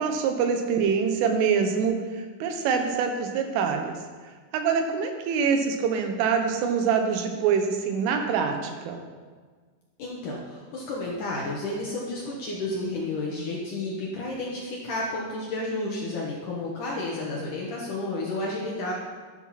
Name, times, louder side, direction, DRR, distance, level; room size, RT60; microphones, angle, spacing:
voice 1, 0.0-3.9 4.5-9.0, right 6 dB, 75° right, 5 dB, 3.6 m, -25 dB
voice 2, 10.0-18.9, left 2 dB, 75° left, -4 dB, 1.8 m, -31 dB
12.5 x 10.5 x 4.2 m, 1.5 s
omnidirectional pair, 5.9 m